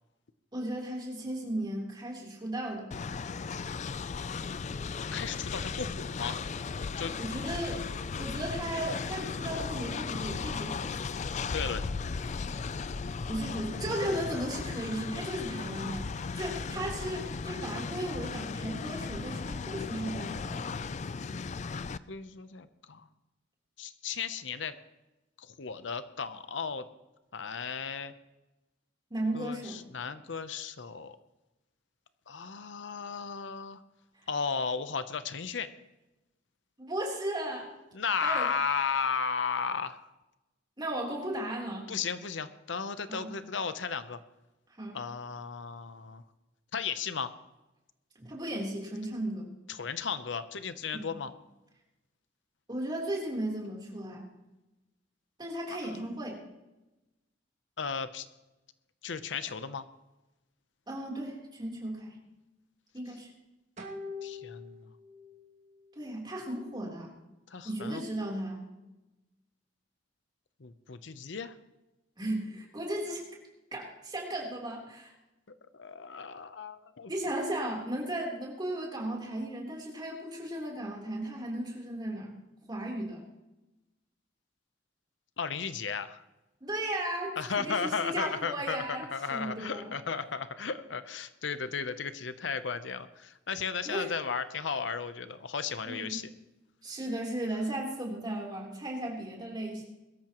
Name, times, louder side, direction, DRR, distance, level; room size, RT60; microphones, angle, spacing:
voice 1, 0.5-2.9 7.2-7.8 8.2-10.9 13.3-20.8 29.1-29.8 36.8-37.7 38.2-38.5 40.8-41.9 43.1-43.3 44.8-45.0 48.2-49.5 50.9-51.1 52.7-54.3 55.4-56.4 60.9-62.2 62.9-63.3 65.9-67.1 67.6-68.6 72.2-73.2 73.7-75.1 77.1-82.3 82.7-83.3 86.6-89.9 93.8-94.1 95.8-96.2 96.8-99.9, right 1 dB, 25° right, -2 dB, 3.6 m, -35 dB
Train, 2.9-22.0, left 5 dB, 40° left, 0.4 m, -36 dB
voice 2, 5.1-6.4 7.0-7.1 11.5-11.8 22.1-23.1 23.8-24.7 25.4-26.8 27.3-28.1 29.3-31.2 32.3-33.8 34.3-35.7 37.9-40.1 41.9-44.2 44.9-46.2 46.7-47.3 49.7-51.3 57.8-58.3 59.0-59.8 64.2-64.9 67.5-68.0 70.6-71.5 75.7-77.1 85.4-86.2 87.4-96.3, left 5 dB, 75° left, 12 dB, 0.7 m, -35 dB
sound 1, 59.5-59.8 63.4-63.5 63.8-64.1, right 2 dB, 40° right, 2.3 m, -51 dB
sound 2, 63.8-65.4 65.7-65.8, left 4 dB, 85° right, 2.6 m, -43 dB
21.5 x 13.5 x 3.0 m, 1.0 s
head